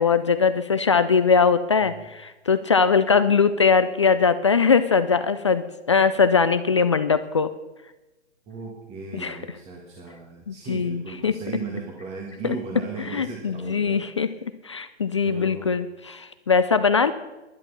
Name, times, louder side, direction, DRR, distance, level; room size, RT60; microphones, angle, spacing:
voice 1, 0.0-7.5 9.1-9.4 10.5-11.4 12.4-12.5 13.1-14.3 14.6-17.1, left 5 dB, 25° left, 12 dB, 0.3 m, -21 dB
voice 2, 8.5-14.3 15.2-15.7, right 4 dB, 20° right, -1 dB, 1.7 m, -37 dB
11.0 x 10.5 x 7.0 m, 1.1 s
hypercardioid pair, 140°, 35 cm